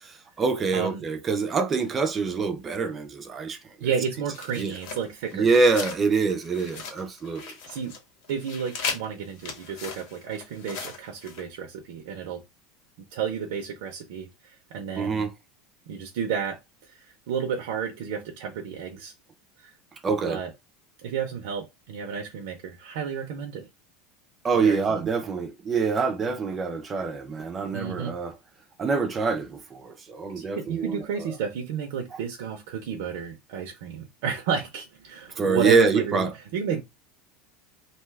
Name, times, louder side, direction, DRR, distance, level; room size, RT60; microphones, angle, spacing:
voice 1, 0.0-3.6 4.6-4.7 5.3-7.5 15.0-15.3 20.0-20.4 24.4-28.4 28.8-31.3 32.1-32.2 35.4-36.3, right 4 dB, 20° right, 0.4 m, -25 dB
voice 2, 0.7-1.0 3.8-5.5 7.7-7.9 8.3-12.4 13.1-15.3 15.9-16.6 16.9-19.1 19.6-19.7 20.3-20.5 21.0-23.7 24.6-25.1 27.7-28.1 30.4-36.8, right 7 dB, 75° right, 0.6 m, -32 dB
sound 1, 4.3-6.0 6.3-8.0 8.2-11.4, left 5 dB, 65° left, 0.9 m, -37 dB
2.7 x 2.2 x 3.2 m
supercardioid pair, 145°, 0 cm